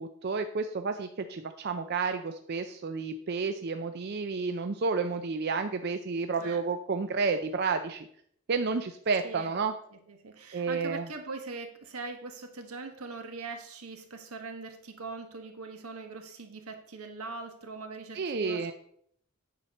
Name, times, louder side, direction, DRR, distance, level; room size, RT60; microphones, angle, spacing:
voice 1, 0.0-8.1 8.5-9.7 10.5-11.1 18.1-18.7, right 4 dB, 45° right, 8 dB, 0.4 m, -31 dB
voice 2, 9.9-18.7, right 3 dB, 80° right, 5 dB, 1.4 m, -42 dB
9.4 x 4.4 x 6.2 m, 0.67 s
head